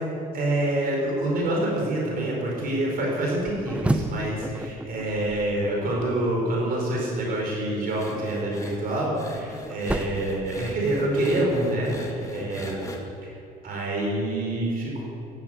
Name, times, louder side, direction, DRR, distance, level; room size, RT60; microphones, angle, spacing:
voice 1, 0.3-12.8 13.2-13.3 13.6-15.0, right 1 dB, 60° right, -2 dB, 4.9 m, -26 dB
sound 1, 3.3-6.4 8.6-11.2, right 1 dB, 5° right, 0.8 m, -32 dB
sound 2, 7.9-13.0, left 2 dB, 20° left, 2.3 m, -41 dB
14.0 x 11.5 x 8.2 m, 2.6 s
cardioid pair, 110°, 17 cm